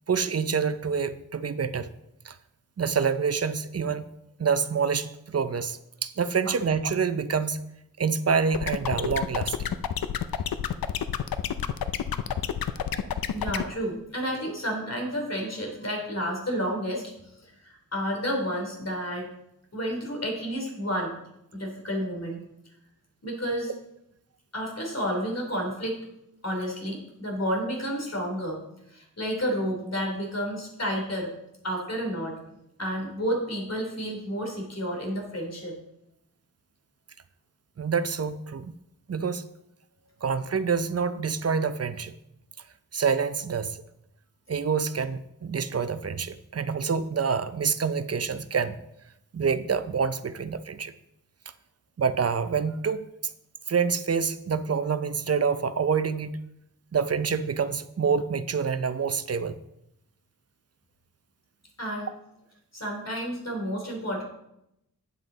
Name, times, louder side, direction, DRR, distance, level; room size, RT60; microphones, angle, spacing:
voice 1, 0.1-1.9 2.2-2.4 2.8-4.1 4.4-7.6 8.0-9.7 12.9-13.1 37.8-38.7 39.1-39.4 40.2-42.1 42.9-43.8 44.5-48.8 49.3-50.9 52.0-53.1 53.7-56.4 56.9-59.6, right 6 dB, 45° right, 12 dB, 0.6 m, -27 dB
sound 1, 8.5-13.6, left 9 dB, 80° left, 0.6 m, -29 dB
voice 2, 13.3-17.1 17.6-19.3 19.7-21.1 21.5-22.4 23.2-23.7 24.5-26.0 26.4-28.6 28.9-31.3 31.6-32.4 32.8-35.8 61.8-62.1 62.7-64.2, equal, 45° left, 1 dB, 3.1 m, -30 dB
9.3 x 7.6 x 4.0 m, 0.82 s
wide cardioid pair, 70°, 35 cm